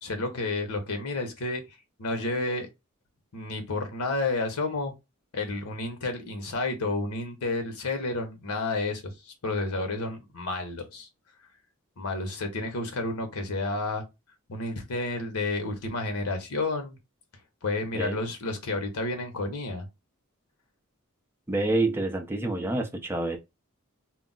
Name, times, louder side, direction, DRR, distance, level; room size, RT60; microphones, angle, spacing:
voice 1, 0.0-1.6 2.0-2.7 3.3-4.9 5.3-11.1 12.0-14.0 14.5-17.0 17.6-19.9, left 2 dB, 85° left, 0.8 m, -31 dB
voice 2, 21.5-23.4, right 2 dB, 10° right, 0.5 m, -27 dB
2.3 x 2.0 x 3.8 m
head